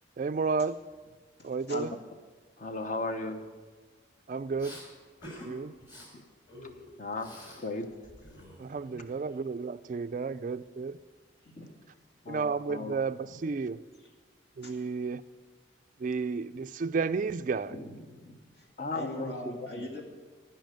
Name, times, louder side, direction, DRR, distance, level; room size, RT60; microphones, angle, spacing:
voice 1, 0.2-0.8 1.4-2.0 4.3-4.8 5.4-5.7 8.6-11.0 12.3-13.8 14.6-15.2 16.0-17.7, right 4 dB, 40° right, 0.3 m, -32 dB
voice 2, 1.4-1.8 11.5-11.7 14.6-14.7 17.7-18.7 18.9-20.0, left 1 dB, 55° left, 2.1 m, -42 dB
voice 3, 2.6-3.4 7.0-7.3 7.6-7.9 12.3-12.9 18.8-19.3 19.7-19.8, left 2 dB, 40° left, 0.9 m, -35 dB
Respiratory sounds, 4.6-4.8 5.2-5.5 5.8-6.1 6.5-7.6 7.9-9.3, left 1 dB, 25° left, 5.2 m, -48 dB
15.5 x 5.7 x 9.1 m
head